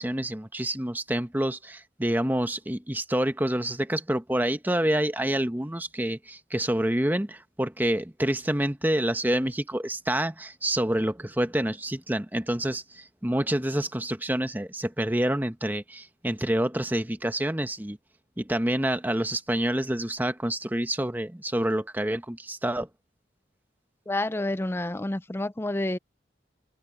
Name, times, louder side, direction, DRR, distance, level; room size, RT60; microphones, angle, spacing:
voice 1, 0.0-18.0 18.4-22.9, right 1 dB, 10° right, 1.0 m, -27 dB
voice 2, 24.1-26.0, left 1 dB, 15° left, 0.5 m, -29 dB
open air
head